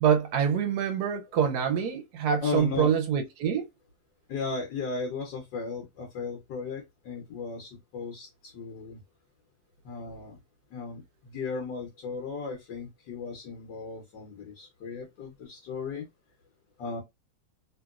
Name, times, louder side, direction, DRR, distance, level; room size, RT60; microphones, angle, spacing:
voice 1, 0.0-3.7, right 8 dB, 70° right, 1.0 m, -25 dB
voice 2, 2.4-2.9 4.3-9.0 9.8-10.4 10.7-16.1 16.8-17.0, left 4 dB, 70° left, 1.5 m, -36 dB
3.2 x 2.9 x 2.3 m
omnidirectional pair, 2.0 m